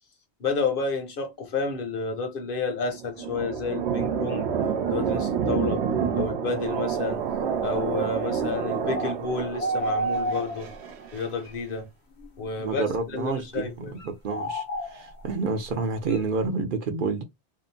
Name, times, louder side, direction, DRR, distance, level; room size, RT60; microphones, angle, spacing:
voice 1, 0.4-4.5 4.9-5.8 6.1-7.2 7.6-10.7 11.1-11.9 12.4-14.0, left 4 dB, 60° left, 0.8 m, -30 dB
sound 1, 2.7-11.3, right 7 dB, 90° right, 0.9 m, -28 dB
sound 2, 9.0-9.2 9.6-10.9 11.4-11.5 12.2-12.8 14.0-15.3 16.1-16.2, right 1 dB, 85° left, 1.1 m, -30 dB
voice 2, 12.6-17.2, right 4 dB, 60° right, 0.7 m, -29 dB
2.8 x 2.0 x 2.5 m
omnidirectional pair, 1.1 m